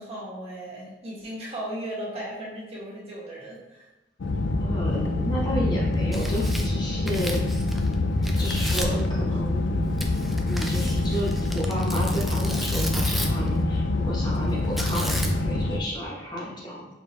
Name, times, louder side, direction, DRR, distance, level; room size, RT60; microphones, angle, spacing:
voice 1, 0.0-3.9, right 1 dB, 35° right, -6 dB, 1.5 m, -36 dB
sound 1, 4.2-15.8, left 2 dB, 90° left, 0.5 m, -25 dB
voice 2, 4.6-7.6 8.4-9.6 10.5-16.9, equal, 25° left, -4 dB, 0.8 m, -32 dB
Tearing, 5.9-7.9 8.2-9.0 10.0-13.5 14.8-15.6, equal, ahead, 0.3 m, -34 dB
4.6 x 3.7 x 2.8 m, 1.0 s
head